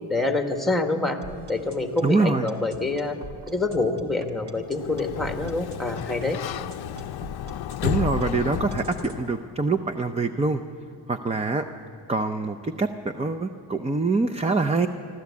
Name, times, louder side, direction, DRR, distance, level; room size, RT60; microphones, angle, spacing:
voice 1, 0.1-1.2 1.5-3.2 3.5-6.4, left 2 dB, ahead, 5 dB, 1.4 m, -26 dB
sound 1, 1.2-9.2, right 1 dB, 60° right, 2.2 m, -43 dB
voice 2, 2.0-2.4 7.8-10.6 11.1-11.6 12.1-14.9, right 3 dB, 15° right, 8 dB, 0.5 m, -24 dB
Sliding door, 4.6-9.5, left 11 dB, 55° left, 0.6 m, -32 dB
26.0 x 13.0 x 8.4 m, 2.5 s
cardioid pair, 120°, 46 cm